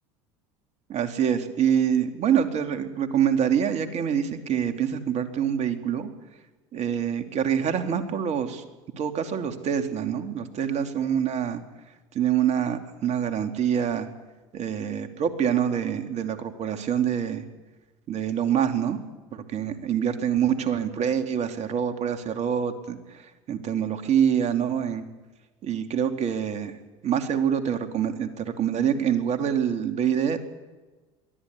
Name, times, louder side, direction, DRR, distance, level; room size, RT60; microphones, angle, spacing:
voice 1, 0.9-6.1 6.7-8.6 9.0-11.6 12.1-14.1 14.5-17.4 18.1-19.0 19.3-23.0 23.5-25.1 25.6-26.7 27.0-30.4, right 8 dB, 45° right, 7 dB, 2.7 m, -25 dB
22.5 x 14.5 x 9.7 m, 1.2 s
hypercardioid pair, 75°, 15 cm